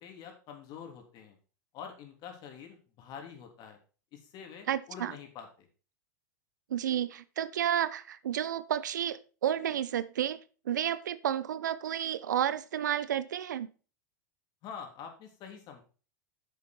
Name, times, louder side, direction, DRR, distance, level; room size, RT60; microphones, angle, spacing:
voice 1, 0.0-1.4 1.7-3.8 4.1-5.7 14.6-15.8, left 7 dB, 45° left, 3 dB, 3.2 m, -46 dB
voice 2, 4.7-5.1 6.7-10.4 10.7-13.7, right 10 dB, 80° right, 17 dB, 0.7 m, -31 dB
8.9 x 7.0 x 4.4 m, 0.36 s
hypercardioid pair, 105°, 10 cm